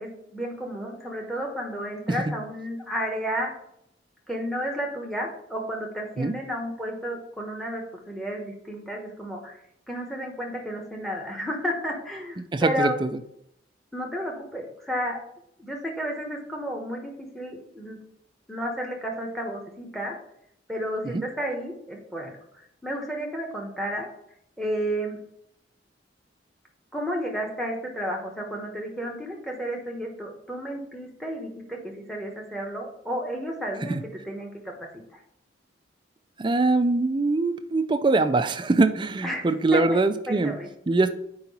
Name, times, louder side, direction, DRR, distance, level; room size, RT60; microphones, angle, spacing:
voice 1, 0.0-3.5 4.3-9.6 9.9-13.0 13.9-15.2 15.6-18.0 18.5-20.2 20.7-22.4 22.8-24.1 24.6-25.2 26.9-34.0 34.3-34.9 39.2-39.5 39.7-40.7, equal, ahead, 0 dB, 1.1 m, -32 dB
voice 2, 12.4-13.2 21.1-21.2 33.8-34.0 36.4-40.5 40.9-41.1, right 3 dB, 25° right, 10 dB, 0.4 m, -23 dB
4.7 x 4.5 x 5.3 m, 0.73 s
head